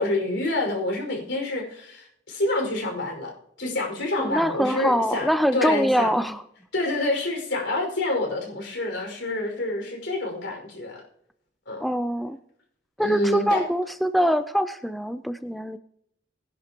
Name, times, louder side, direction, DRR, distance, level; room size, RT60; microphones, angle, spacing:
voice 1, 0.0-3.3 3.6-6.1 6.7-11.0 11.7-11.9 13.0-13.6, left 2 dB, 70° left, 1 dB, 5.5 m, -27 dB
voice 2, 4.2-6.4 11.8-12.4 13.0-15.8, equal, ahead, 10 dB, 0.4 m, -24 dB
21.5 x 11.0 x 3.0 m, 0.70 s
head